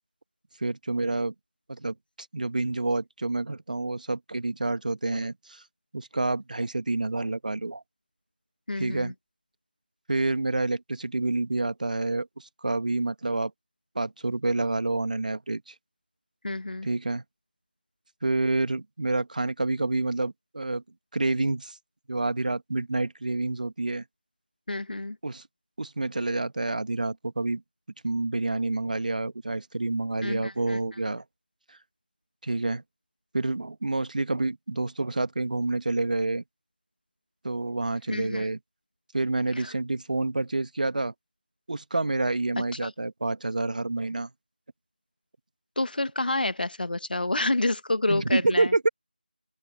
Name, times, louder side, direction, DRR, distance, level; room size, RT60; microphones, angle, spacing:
voice 1, 0.6-1.3 1.7-1.9 2.3-5.6 5.9-7.8 8.8-9.1 10.1-13.5 13.9-15.7 16.8-17.2 18.2-20.8 21.1-21.8 22.1-24.0 25.2-25.4 25.8-27.6 28.0-31.2 31.7-31.8 32.4-32.8 33.3-36.4 37.4-38.6 39.1-41.1 41.7-44.3 48.1-48.9, right 2 dB, 50° right, 1.7 m, -28 dB
voice 2, 8.7-9.1 16.4-16.9 24.7-25.2 30.2-30.8 38.1-38.5 39.6-39.7 42.8-42.9 45.7-48.7, left 2 dB, 65° left, 1.7 m, -29 dB
open air
figure-of-eight pair, 175°, 5 cm